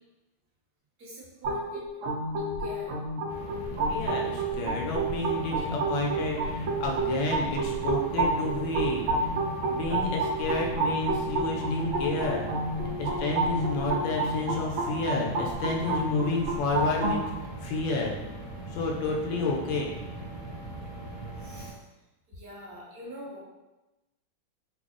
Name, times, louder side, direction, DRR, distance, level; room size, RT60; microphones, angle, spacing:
voice 1, 1.0-1.8 2.4-3.0 21.4-21.8 22.3-23.4, equal, 65° right, -6 dB, 1.2 m, -45 dB
sound 1, 1.4-17.2, right 2 dB, 85° right, 1.4 m, -30 dB
sound 2, 3.3-21.7, right 2 dB, 45° left, 0.7 m, -40 dB
voice 2, 3.9-9.0 9.6-12.5 13.0-17.2 17.6-18.2 18.7-19.9, left 3 dB, 75° left, -1 dB, 1.2 m, -30 dB
3.4 x 2.3 x 3.6 m, 1.0 s
omnidirectional pair, 2.1 m